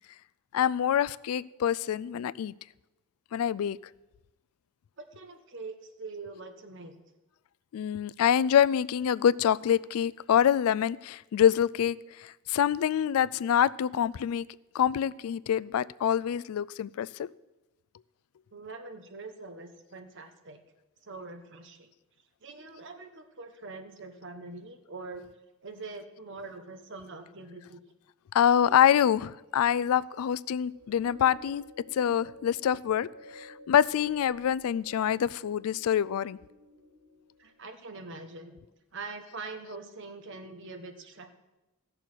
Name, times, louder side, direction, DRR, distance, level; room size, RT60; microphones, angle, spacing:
voice 1, 0.5-2.5 3.3-3.8 7.7-14.5 14.7-17.3 28.3-31.6 31.9-36.4, left 9 dB, 75° left, 0.3 m, -26 dB
voice 2, 5.0-6.9 18.5-20.6 21.0-21.9 22.4-25.3 25.6-27.8 37.4-38.6 38.9-41.3, right 3 dB, 55° right, 1.2 m, -43 dB
sound 1, 30.6-38.0, equal, 75° right, 2.5 m, -52 dB
15.5 x 6.9 x 6.0 m
head